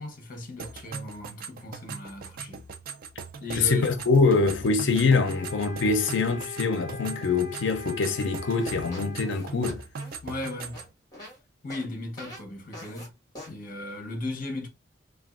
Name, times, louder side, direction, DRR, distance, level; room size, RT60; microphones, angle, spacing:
voice 1, 0.0-2.6 3.4-4.0 10.2-10.8 11.6-13.1 13.5-14.7, left 1 dB, 45° left, 0.8 m, -36 dB
sound 1, 0.6-10.9, right 5 dB, 50° right, 0.4 m, -40 dB
voice 2, 3.5-9.8, left 4 dB, 75° left, 0.5 m, -24 dB
sound 2, 5.1-9.2, left 3 dB, 20° right, 1.9 m, -41 dB
sound 3, 8.5-11.4 11.7-11.9 12.2-12.4 12.7-13.1 13.3-13.5, left 1 dB, 20° left, 1.4 m, -44 dB
3.4 x 2.3 x 2.4 m
head